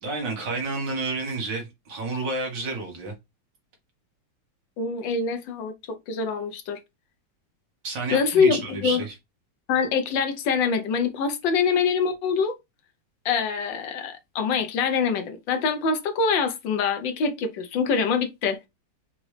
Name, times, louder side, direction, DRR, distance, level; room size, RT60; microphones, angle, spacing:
voice 1, 0.0-3.1 7.8-9.1, right 3 dB, 70° right, 2.1 m, -30 dB
voice 2, 4.8-6.8 8.1-9.0 9.7-12.6 13.2-18.6, left 5 dB, 80° left, 1.5 m, -24 dB
5.1 x 3.0 x 3.2 m
omnidirectional pair, 2.0 m